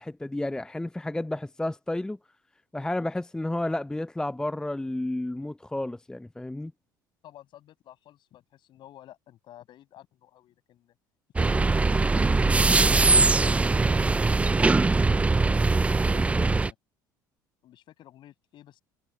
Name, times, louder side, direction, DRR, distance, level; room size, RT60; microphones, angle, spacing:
voice 1, 0.0-2.2 2.7-6.7 16.1-16.5, left 1 dB, 5° left, 0.8 m, -31 dB
voice 2, 7.2-10.9 11.4-14.1 15.9-16.8 17.6-18.8, left 13 dB, 45° left, 6.7 m, -51 dB
sound 1, 11.4-16.7, right 3 dB, 10° right, 0.5 m, -21 dB
figure-of-eight pair, 65°, 11 cm